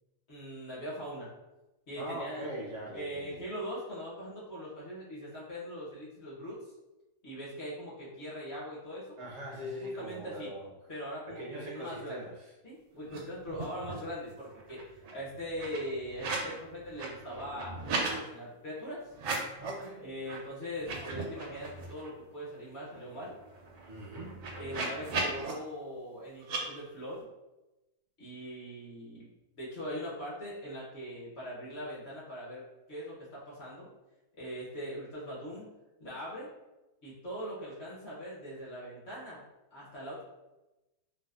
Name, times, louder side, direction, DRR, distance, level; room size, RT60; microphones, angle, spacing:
voice 1, 0.3-1.3 1.9-2.5 2.9-6.6 7.2-9.2 10.0-10.5 10.9-12.2 12.6-14.8 15.1-19.0 20.0-23.3 24.6-27.3 28.2-29.3 29.6-33.9 34.4-35.7 36.0-36.5 37.0-39.4 39.7-40.2, equal, 55° left, -7 dB, 0.9 m, -41 dB
voice 2, 1.9-3.4 9.2-10.7 11.3-12.5 19.6-20.1 23.8-24.6, equal, 65° right, -3 dB, 1.0 m, -41 dB
sound 1, 13.0-13.2 13.4-14.1 14.5-16.5 16.8-18.2 19.1-19.8 20.2-20.4 20.7-22.1 22.5-22.6 22.8-25.5 26.4-26.6, right 3 dB, 90° right, 1.1 m, -37 dB
2.7 x 2.2 x 2.3 m, 1.0 s
omnidirectional pair, 1.5 m